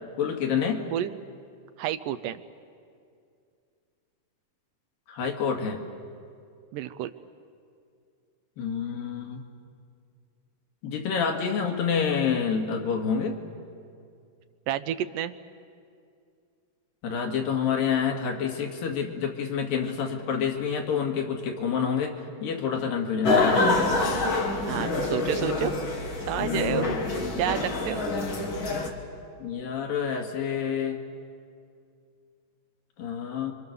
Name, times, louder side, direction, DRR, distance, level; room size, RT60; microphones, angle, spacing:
voice 1, 0.2-0.9 5.1-5.8 8.6-9.4 10.8-13.4 17.0-22.1 22.4-23.7 26.4-27.0 29.4-31.0 33.0-33.5, left 6 dB, 85° left, 2 dB, 3.8 m, -28 dB
voice 2, 1.8-2.4 6.7-7.1 14.7-15.3 24.7-25.7 26.3-26.9 27.3-28.0, right 11 dB, 80° right, 10 dB, 2.3 m, -29 dB
sound 1, 23.2-28.9, left 2 dB, 40° left, 2.4 m, -26 dB
28.5 x 25.0 x 6.9 m, 2.3 s
omnidirectional pair, 4.0 m